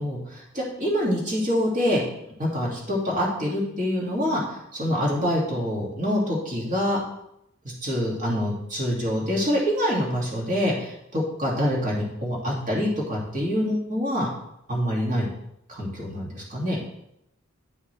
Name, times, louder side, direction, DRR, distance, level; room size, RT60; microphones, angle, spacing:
voice 1, 0.0-2.0 2.4-7.0 7.6-14.3 14.7-15.3 15.7-16.8, equal, 35° right, -4 dB, 2.3 m, -26 dB
10.5 x 5.7 x 3.3 m, 0.80 s
head